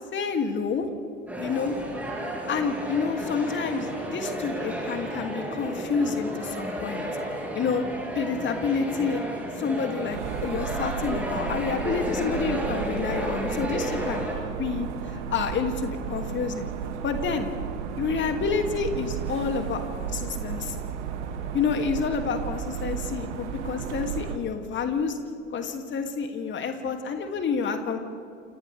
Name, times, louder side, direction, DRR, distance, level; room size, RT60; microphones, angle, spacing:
voice 1, 0.1-0.9 1.4-1.8 2.5-7.1 7.5-7.8 8.1-9.2 9.6-14.9 15.1-16.7 17.0-17.5 18.0-20.8 21.5-25.2 25.5-28.0, left 5 dB, 30° left, 5 dB, 2.6 m, -29 dB
sound 1, 1.3-14.3, right 1 dB, 5° right, 7.2 m, -32 dB
sound 2, 10.1-24.4, right 7 dB, 60° right, 2.0 m, -34 dB
29.0 x 28.0 x 3.5 m, 2.5 s
figure-of-eight pair, 80°, 39 cm